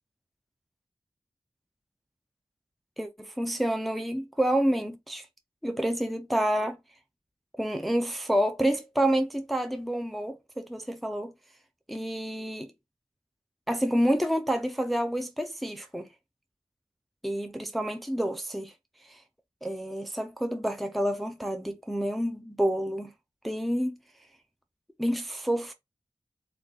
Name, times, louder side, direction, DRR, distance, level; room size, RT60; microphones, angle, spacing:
voice 1, 3.0-5.3 5.6-6.8 7.6-11.3 11.9-12.7 13.7-16.1 17.2-18.7 19.0-19.2 19.6-23.1 23.4-24.0 25.0-25.7, right 1 dB, ahead, 0.5 m, -28 dB
3.8 x 2.3 x 3.8 m
wide cardioid pair, 85°, 11 cm